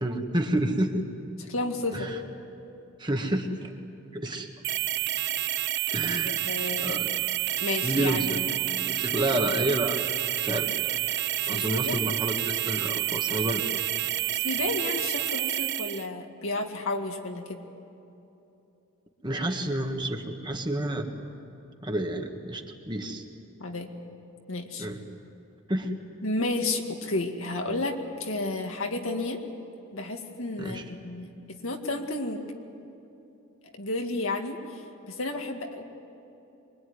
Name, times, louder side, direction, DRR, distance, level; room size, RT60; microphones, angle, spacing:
voice 1, 0.0-1.0 1.9-2.2 3.0-3.7 4.1-4.5 5.9-6.4 6.8-7.1 7.8-8.4 8.8-10.0 10.4-10.8 11.5-13.8 19.2-21.1 21.8-23.2 24.8-25.0 25.7-25.9 30.6-30.8, right 1 dB, 20° right, 3 dB, 1.8 m, -29 dB
voice 2, 1.4-2.1 6.2-7.0 7.6-8.5 11.4-12.0 14.3-17.6 23.6-23.9 24.5-24.9 26.2-29.4 29.9-32.5 33.8-35.8, left 2 dB, 70° left, 3 dB, 2.2 m, -32 dB
sound 1, 4.6-16.1, right 14 dB, 55° right, 0.5 m, -29 dB
24.0 x 22.5 x 9.7 m, 2.9 s
head